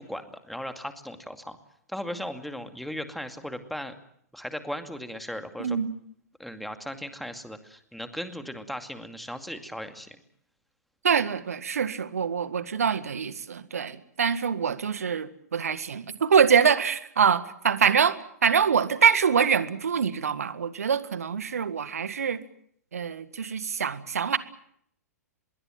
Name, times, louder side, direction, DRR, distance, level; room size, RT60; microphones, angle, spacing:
voice 1, 0.0-1.6 1.9-3.9 4.3-5.8 6.4-10.2, equal, ahead, 8 dB, 2.3 m, -37 dB
voice 2, 5.6-5.9 11.0-22.4 22.9-24.4, right 7 dB, 65° right, 14 dB, 1.8 m, -24 dB
25.0 x 22.5 x 7.4 m, 0.68 s
figure-of-eight pair, 105°, 9 cm